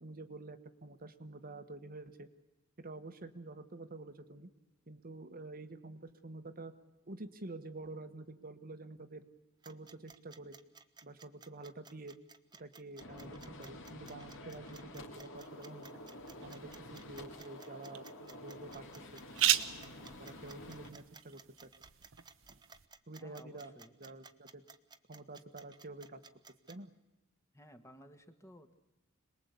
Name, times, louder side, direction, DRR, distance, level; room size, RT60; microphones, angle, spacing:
voice 1, 0.0-2.3 2.8-4.5 4.9-6.7 7.0-9.3 9.6-10.6 11.0-12.2 12.6-15.9 16.4-18.8 19.9-21.7 23.1-23.7 24.0-24.6 25.1-26.2 26.7-26.9, right 2 dB, 45° right, 8 dB, 1.3 m, -48 dB
sound 1, 9.6-26.8, right 5 dB, 20° right, 0.9 m, -56 dB
Gunshot gunfire, 13.0-20.9, left 1 dB, 65° left, 2.9 m, -50 dB
sound 2, 15.3-22.9, right 12 dB, 65° right, 1.0 m, -39 dB
voice 2, 23.2-24.0 27.5-28.7, equal, 15° left, 7 dB, 1.5 m, -56 dB
26.5 x 20.0 x 8.3 m, 0.98 s
head